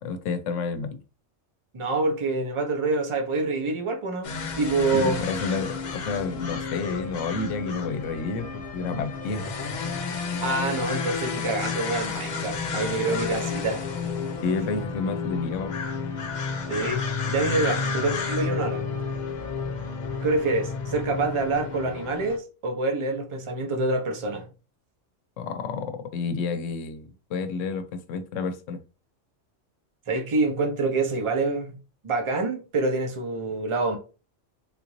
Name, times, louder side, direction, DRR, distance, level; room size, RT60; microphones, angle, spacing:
voice 1, 0.0-1.0 4.9-9.4 14.4-15.7 17.7-17.8 25.4-28.8, left 4 dB, 85° left, 0.9 m, -30 dB
voice 2, 1.7-4.3 4.6-5.2 10.4-13.8 16.7-18.8 20.2-24.5 30.1-31.7 32.0-34.0, right 3 dB, 35° right, 0.5 m, -26 dB
sound 1, 4.2-22.4, left 5 dB, 50° left, 0.6 m, -31 dB
3.6 x 2.5 x 2.9 m
omnidirectional pair, 1.3 m